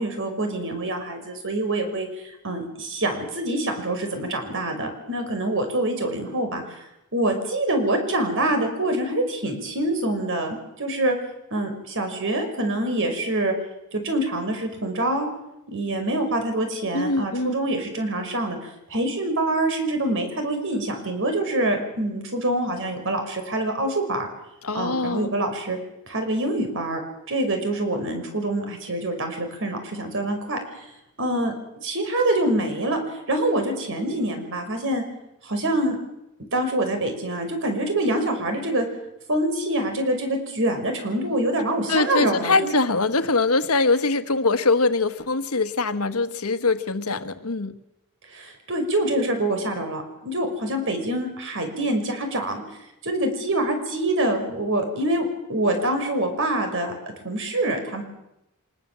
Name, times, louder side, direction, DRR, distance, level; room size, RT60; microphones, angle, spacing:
voice 1, 0.0-6.8 7.1-11.2 11.5-13.5 13.9-15.3 15.7-24.3 24.7-25.8 26.1-27.0 27.3-30.9 31.2-31.5 31.8-33.0 33.3-35.0 35.4-36.0 36.5-38.9 39.3-42.8 48.3-52.6 53.0-56.9 57.2-58.0, right 1 dB, 60° right, 5 dB, 5.6 m, -25 dB
voice 2, 16.9-17.5 24.6-25.3 41.9-47.7, left 3 dB, 85° left, 10 dB, 1.4 m, -23 dB
25.0 x 21.0 x 7.6 m, 0.89 s
head